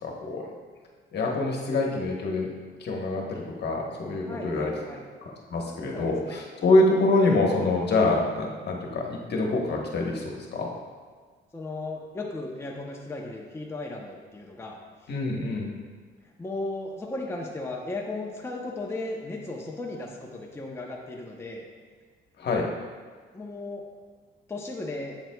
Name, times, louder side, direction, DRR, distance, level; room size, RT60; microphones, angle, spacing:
voice 1, 0.0-0.4 1.1-2.5 2.8-4.7 5.2-10.7 15.1-15.8 22.4-22.6, left 2 dB, 55° left, 0 dB, 1.2 m, -25 dB
voice 2, 4.3-5.0 5.9-6.4 11.5-15.1 16.4-21.6 23.3-23.8 24.5-25.2, left 2 dB, 15° left, -1 dB, 0.8 m, -36 dB
7.8 x 7.2 x 2.3 m, 1.5 s
cardioid pair, 90°, 20 cm